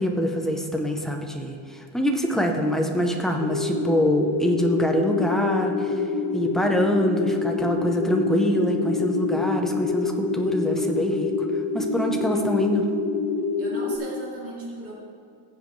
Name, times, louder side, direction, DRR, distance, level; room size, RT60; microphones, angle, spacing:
voice 1, 0.0-6.0 6.3-11.5 11.7-12.9, equal, ahead, 2 dB, 0.6 m, -24 dB
sound 1, 3.4-14.0, left 4 dB, 75° left, 1.9 m, -26 dB
voice 2, 13.6-14.9, right 2 dB, 30° right, -6 dB, 2.8 m, -37 dB
17.5 x 7.5 x 3.1 m, 2.4 s
cardioid pair, 165°, 48 cm